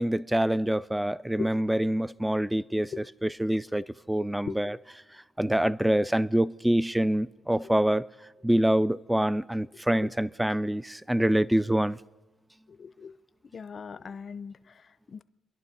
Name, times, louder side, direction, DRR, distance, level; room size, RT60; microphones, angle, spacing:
voice 1, 0.0-2.9 3.2-4.7 5.4-8.0 8.4-12.0, right 1 dB, 5° right, 0.4 m, -25 dB
voice 2, 12.7-13.2 13.5-15.2, left 6 dB, 45° left, 0.6 m, -39 dB
26.5 x 11.5 x 4.2 m
cardioid pair, 90°, 0 cm